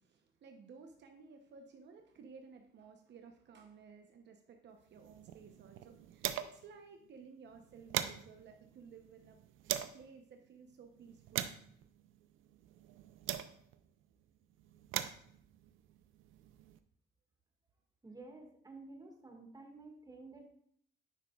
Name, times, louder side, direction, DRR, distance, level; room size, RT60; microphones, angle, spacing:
voice 1, 0.0-9.4 9.9-11.5, right 5 dB, 60° right, 4 dB, 0.8 m, -56 dB
sound 1, 4.9-6.7 7.1-7.2 7.5-10.0 10.7-13.9 14.6-16.8, right 12 dB, 85° right, 0.5 m, -42 dB
voice 2, 18.0-20.5, right 3 dB, 20° right, 1 dB, 1.8 m, -52 dB
9.9 x 5.9 x 2.4 m, 0.64 s
cardioid pair, 90°, 20 cm